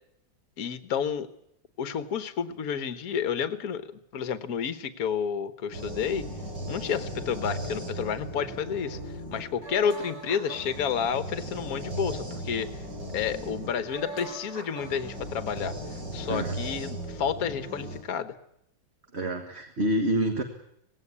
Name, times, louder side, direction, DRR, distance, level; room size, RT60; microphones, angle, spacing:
voice 1, 0.6-1.3 1.8-6.3 6.7-9.0 9.3-12.7 13.1-15.8 16.1-18.3, left 7 dB, 55° left, 12 dB, 1.4 m, -30 dB
sound 1, 5.7-18.0, right 1 dB, 65° right, 4.8 m, -37 dB
voice 2, 19.1-20.4, right 1 dB, 35° right, 5 dB, 1.7 m, -27 dB
19.0 x 17.0 x 9.7 m, 0.74 s
omnidirectional pair, 2.1 m